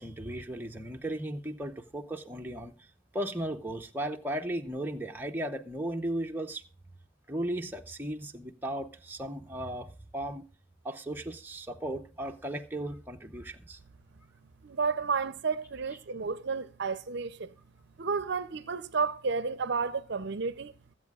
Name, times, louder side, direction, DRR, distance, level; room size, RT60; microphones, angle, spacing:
voice 1, 0.0-2.7 3.1-6.6 7.3-10.5 10.8-13.8, right 1 dB, 10° right, 0.7 m, -36 dB
voice 2, 14.6-17.5 18.0-20.7, right 5 dB, 55° right, 0.6 m, -31 dB
24.0 x 8.2 x 2.4 m
head